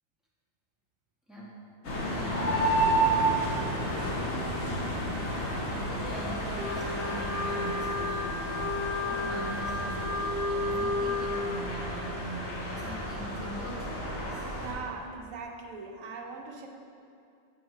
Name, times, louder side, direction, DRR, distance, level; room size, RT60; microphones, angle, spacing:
voice 1, 1.3-1.6 5.6-14.4, right 1 dB, ahead, -7 dB, 1.3 m, -41 dB
sound 1, 1.8-14.7, right 1 dB, 90° left, 1.7 m, -31 dB
Wind instrument woodwind instrument, 6.5-11.4, left 2 dB, 40° right, 1.0 m, -32 dB
voice 2, 14.1-16.7, right 4 dB, 85° right, 2 dB, 1.1 m, -41 dB
8.0 x 5.7 x 3.2 m, 2.5 s
omnidirectional pair, 1.4 m